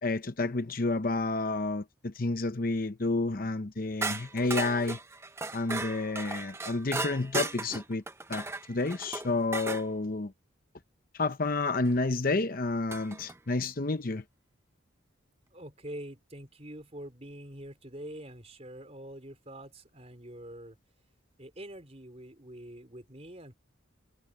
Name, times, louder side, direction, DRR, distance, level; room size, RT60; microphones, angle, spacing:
voice 1, 0.0-5.0 5.5-8.0 8.3-10.3 11.1-14.2, left 3 dB, 45° left, 0.8 m, -30 dB
sound 1, 4.0-9.9 11.8-11.9 12.9-13.4, right 3 dB, 10° right, 0.6 m, -36 dB
voice 2, 15.5-20.8 21.4-23.5, right 1 dB, 30° right, 4.3 m, -45 dB
head